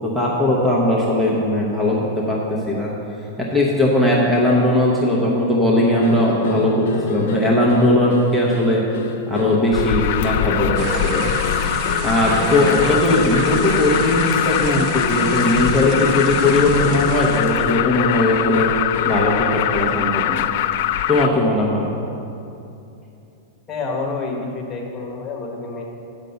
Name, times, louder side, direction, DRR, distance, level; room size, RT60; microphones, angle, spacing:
voice 1, 0.0-2.9 3.4-8.8 9.3-11.2 12.0-18.7 19.1-20.4 21.1-21.9, left 1 dB, 5° right, -4 dB, 0.8 m, -19 dB
sound 1, 6.0-19.3, left 6 dB, 70° left, 0.7 m, -29 dB
Alarm, 9.7-21.3, left 12 dB, 50° left, 0.3 m, -22 dB
sound 2, 10.8-17.8, right 7 dB, 35° right, 0.4 m, -29 dB
voice 2, 23.7-25.8, left 3 dB, 20° left, -1 dB, 1.3 m, -28 dB
9.0 x 5.2 x 6.9 m, 2.8 s
supercardioid pair, 165°, 0 cm